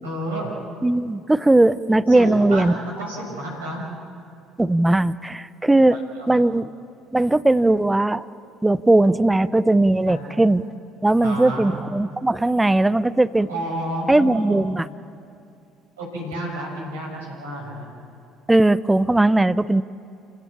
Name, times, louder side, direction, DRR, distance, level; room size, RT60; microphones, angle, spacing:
voice 1, 0.0-0.5 2.1-3.8 5.9-6.4 10.1-10.3 11.2-11.7 13.5-14.6 16.0-17.9, right 1 dB, 75° right, -2 dB, 6.4 m, -31 dB
voice 2, 0.8-2.7 4.6-6.0 6.3-6.7 7.1-8.2 8.6-10.6 11.0-13.5 14.1-14.9 18.5-19.8, right 2 dB, 10° right, 16 dB, 0.6 m, -18 dB
28.5 x 16.5 x 7.4 m, 2.6 s
figure-of-eight pair, 55°, 0 cm